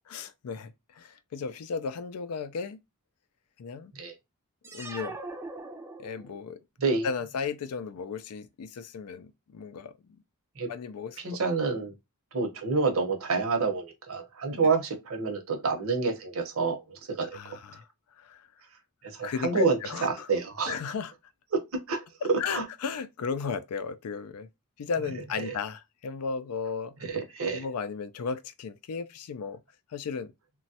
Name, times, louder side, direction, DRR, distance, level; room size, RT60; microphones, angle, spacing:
voice 1, 0.1-2.8 3.6-3.9 4.7-5.2 6.0-6.6 7.0-10.2 10.7-11.4 17.3-17.9 18.2-18.5 19.2-20.3 20.6-21.1 22.2-24.5 24.8-26.9 27.5-29.6 29.9-30.3, left 5 dB, 85° left, 0.4 m, -35 dB
sound 1, 4.6-6.5, right 2 dB, 10° right, 0.3 m, -41 dB
voice 2, 11.2-11.9 12.3-17.6 19.0-20.8 21.5-21.6 21.9-22.6 25.4-25.6 27.0-27.7, right 4 dB, 65° right, 0.8 m, -28 dB
3.0 x 2.2 x 2.7 m
head